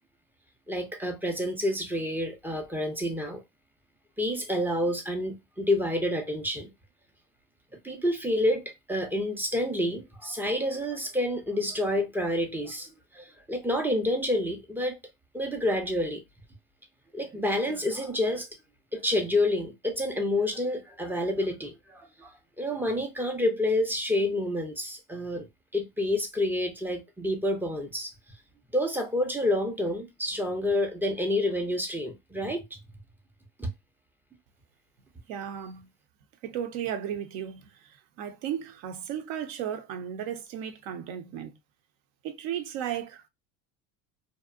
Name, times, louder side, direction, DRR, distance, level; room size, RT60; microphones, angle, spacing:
voice 1, 0.7-3.4 4.2-6.7 7.8-12.9 13.1-15.0 15.3-16.2 17.1-18.5 18.9-22.3 22.6-25.5 25.7-28.1 28.7-32.6 33.6-33.7, left 1 dB, 5° right, 0.4 m, -28 dB
voice 2, 35.3-35.9 36.4-41.6 42.2-43.3, right 9 dB, 65° right, 0.6 m, -35 dB
2.6 x 2.1 x 2.4 m
supercardioid pair, 120°, 39 cm